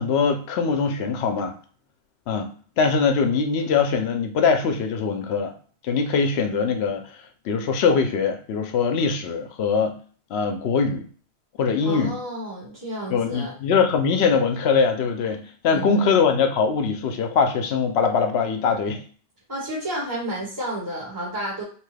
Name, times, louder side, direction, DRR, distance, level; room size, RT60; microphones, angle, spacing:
voice 1, 0.0-1.5 2.3-2.5 2.8-5.5 5.8-7.0 7.4-10.0 10.3-11.1 11.6-12.1 13.1-19.0, left 5 dB, 75° left, 7 dB, 0.8 m, -22 dB
voice 2, 11.8-13.5 15.7-16.1 19.5-21.6, right 1 dB, 20° right, -6 dB, 1.1 m, -31 dB
3.0 x 2.2 x 3.2 m, 0.41 s
omnidirectional pair, 1.1 m